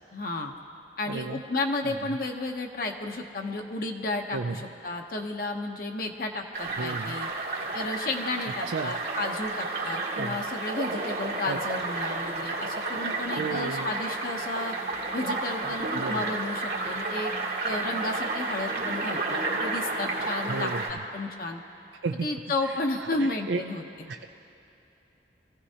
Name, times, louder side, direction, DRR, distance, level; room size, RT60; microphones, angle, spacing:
voice 1, 0.1-0.5 1.0-7.3 7.7-14.7 15.1-17.3 17.6-21.6 22.2-23.8, left 2 dB, 55° left, 3 dB, 0.8 m, -32 dB
voice 2, 1.1-1.4 4.3-4.6 6.8-7.2 8.7-8.9 10.2-10.4 11.5-11.6 13.4-14.0 15.9-16.2 20.5-20.8 22.0-22.3 23.2-23.6 24.1-24.3, right 4 dB, 90° right, 4 dB, 0.5 m, -32 dB
sound 1, 6.5-20.9, right 3 dB, 70° right, 2.2 m, -31 dB
24.0 x 15.5 x 2.8 m, 2.8 s
head